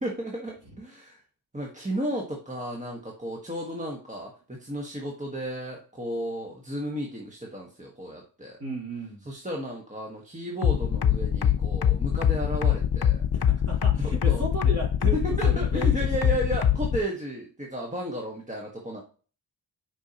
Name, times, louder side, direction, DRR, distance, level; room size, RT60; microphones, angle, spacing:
voice 1, 0.0-1.2 1.5-8.6 9.2-13.3 14.0-14.5 15.2-19.0, right 1 dB, 15° right, -1 dB, 1.3 m, -33 dB
voice 2, 8.6-9.2 13.3-16.3, right 1 dB, 35° right, -2 dB, 3.6 m, -35 dB
sound 1, 10.6-17.0, left 9 dB, 60° left, 0.7 m, -22 dB
8.3 x 5.4 x 2.9 m, 0.38 s
wide cardioid pair, 100°, 44 cm